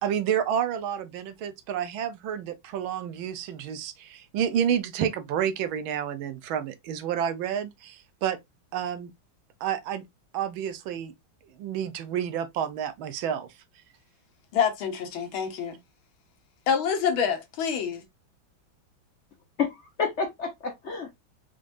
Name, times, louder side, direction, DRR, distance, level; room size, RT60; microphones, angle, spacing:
voice 1, 0.0-8.4 8.7-9.1 9.6-10.0 10.3-11.1 11.5-13.5, right 9 dB, 80° right, 1.5 m, -29 dB
voice 2, 14.5-15.8 16.7-18.0, left 7 dB, 80° left, 1.8 m, -26 dB
voice 3, 19.6-21.1, left 5 dB, 45° left, 0.9 m, -30 dB
4.9 x 3.7 x 2.5 m
omnidirectional pair, 2.2 m